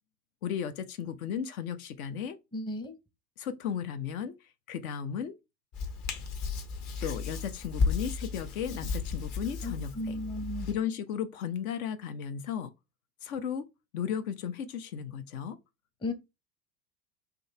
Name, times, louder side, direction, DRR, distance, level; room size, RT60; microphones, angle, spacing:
voice 1, 0.4-2.4 3.4-4.4 4.7-5.3 7.0-10.2 10.7-12.7 13.2-13.7 13.9-15.6, left 8 dB, 60° left, 0.7 m, -35 dB
voice 2, 2.5-3.0 9.6-10.7 16.0-16.1, left 1 dB, 10° left, 0.7 m, -35 dB
Hands, 5.7-10.7, left 4 dB, 45° left, 1.1 m, -34 dB
3.8 x 2.8 x 4.3 m
figure-of-eight pair, 80°, 48 cm